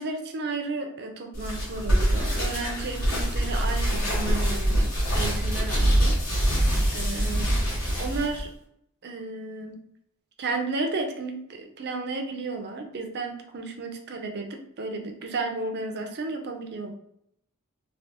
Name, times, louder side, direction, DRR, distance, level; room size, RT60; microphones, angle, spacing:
voice 1, 0.0-7.5 8.0-8.5 9.0-9.8 10.4-16.9, right 3 dB, 50° right, 4 dB, 0.5 m, -33 dB
sound 1, 1.3-8.4, equal, 65° left, 1.4 m, -24 dB
3.2 x 2.5 x 2.9 m, 0.72 s
head